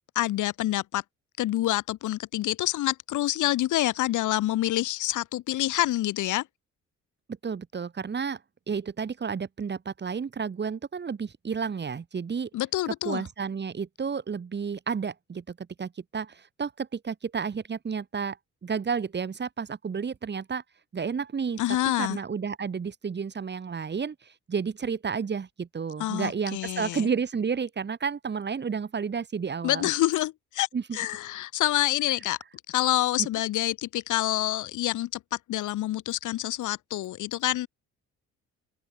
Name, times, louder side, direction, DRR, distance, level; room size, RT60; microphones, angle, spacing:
voice 1, 0.1-1.0 1.4-6.5 12.5-13.2 21.6-22.2 26.0-27.1 29.6-30.7 30.9-32.4 32.7-37.7, left 15 dB, 80° left, 1.3 m, -27 dB
voice 2, 7.4-8.4 8.7-12.5 12.9-18.4 18.6-20.6 20.9-21.6 22.0-24.2 24.5-29.9 30.7-31.0 33.2-33.3, right 6 dB, 35° right, 1.8 m, -31 dB
cardioid pair, 90°, 30 cm